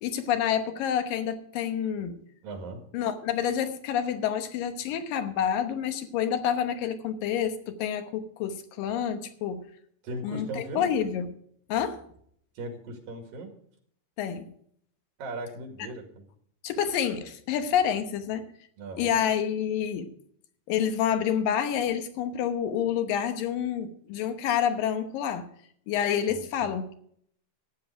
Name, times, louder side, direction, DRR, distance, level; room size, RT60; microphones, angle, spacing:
voice 1, 0.0-2.2 2.9-9.6 10.2-11.3 11.7-12.0 14.2-14.5 16.6-18.5 19.0-20.1 20.7-25.5 25.9-26.9, left 9 dB, 80° left, 8 dB, 2.8 m, -28 dB
voice 2, 2.4-2.8 10.0-10.9 12.6-13.5 15.2-16.3 18.8-19.2 26.3-26.7, right 2 dB, 90° right, 3 dB, 3.9 m, -38 dB
13.0 x 9.4 x 4.8 m, 0.64 s
omnidirectional pair, 4.0 m